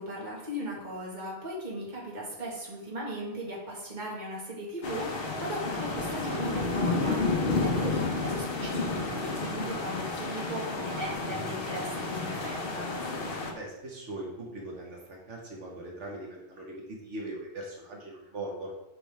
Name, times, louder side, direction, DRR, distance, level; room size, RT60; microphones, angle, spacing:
voice 1, 0.0-7.3 7.6-12.9, equal, 40° right, -4 dB, 1.9 m, -38 dB
sound 1, 4.8-13.5, left 3 dB, 55° left, 1.1 m, -31 dB
voice 2, 13.5-18.7, right 1 dB, 85° right, -1 dB, 1.7 m, -40 dB
9.2 x 5.1 x 3.5 m, 0.95 s
omnidirectional pair, 1.2 m